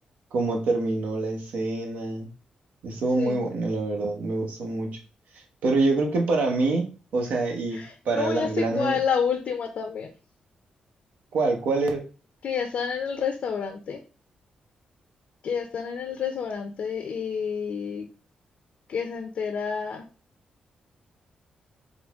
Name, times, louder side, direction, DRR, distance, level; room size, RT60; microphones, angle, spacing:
voice 1, 0.3-2.3 2.8-5.0 5.6-9.0 11.3-12.0, right 3 dB, 85° right, 3 dB, 0.9 m, -26 dB
voice 2, 7.7-10.1 12.4-14.0 15.4-18.1 18.9-20.1, left 6 dB, 70° left, 5 dB, 0.5 m, -29 dB
3.8 x 2.0 x 3.5 m, 0.35 s
cardioid pair, 85°, 2 cm